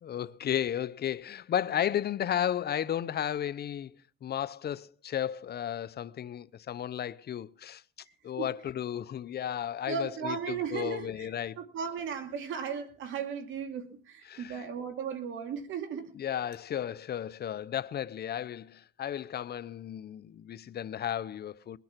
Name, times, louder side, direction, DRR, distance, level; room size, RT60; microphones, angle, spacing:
voice 1, 0.0-3.9 4.2-7.8 8.2-11.6 14.3-14.6 16.1-21.8, left 10 dB, 55° left, 0.7 m, -34 dB
voice 2, 9.9-11.3 11.6-16.1, right 6 dB, 80° right, 2.5 m, -36 dB
21.5 x 9.2 x 5.9 m
cardioid pair, 90°, 20 cm